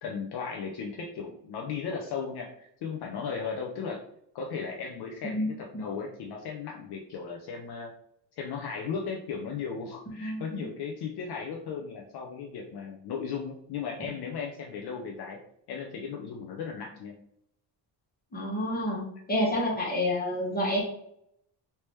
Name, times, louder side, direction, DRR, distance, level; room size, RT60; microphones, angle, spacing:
voice 1, 0.0-4.0 4.3-7.9 8.4-15.4 15.7-17.1, left 6 dB, 60° left, 0 dB, 0.6 m, -36 dB
voice 2, 10.2-10.6 18.3-19.0 19.3-20.8, left 1 dB, 20° left, -3 dB, 1.1 m, -28 dB
3.3 x 2.8 x 3.1 m, 0.73 s
cardioid pair, 145°, 46 cm